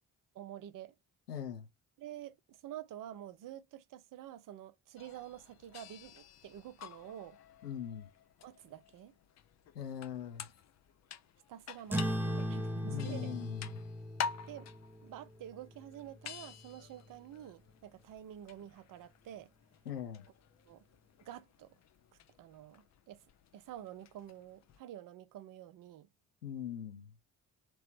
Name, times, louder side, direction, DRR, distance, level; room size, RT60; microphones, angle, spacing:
voice 1, 0.3-0.9 2.0-7.4 8.4-9.1 11.5-13.4 14.5-14.7 15.0-19.5 20.7-20.8 21.2-21.8 22.4-23.3 23.5-26.1, right 11 dB, 45° right, 0.6 m, -49 dB
voice 2, 1.3-1.7 7.6-8.1 9.7-10.5 12.8-13.8 19.9-20.2 26.4-27.1, left 9 dB, 85° left, 0.7 m, -41 dB
sound 1, 5.0-24.8, left 7 dB, 35° left, 0.6 m, -49 dB
sound 2, 11.9-16.8, equal, 5° right, 0.7 m, -38 dB
3.0 x 3.0 x 3.0 m
figure-of-eight pair, 40°, 46 cm